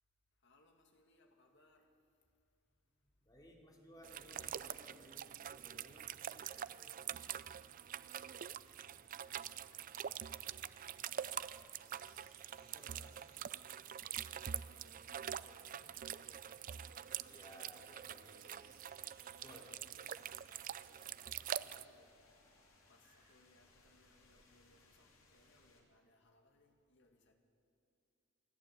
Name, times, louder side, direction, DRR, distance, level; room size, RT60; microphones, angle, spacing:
voice 1, 0.4-1.9 5.8-5.9 6.3-8.4 8.9-11.0 14.1-14.3 14.5-16.4 19.8-20.5 21.0-22.1 22.9-27.3, left 1 dB, 60° left, 3 dB, 2.2 m, -71 dB
voice 2, 3.0-6.1 12.6-13.2 15.0-15.2 15.6-15.8 17.2-18.8 19.4-19.8, left 1 dB, 20° left, 0 dB, 2.9 m, -60 dB
sound 1, 4.0-21.8, right 9 dB, 40° right, 0.4 m, -45 dB
sound 2, 8.7-23.3, right 4 dB, 85° right, 5.2 m, -73 dB
sound 3, 10.5-25.8, left 3 dB, 75° left, 3.2 m, -70 dB
27.5 x 11.5 x 8.3 m, 2.6 s
head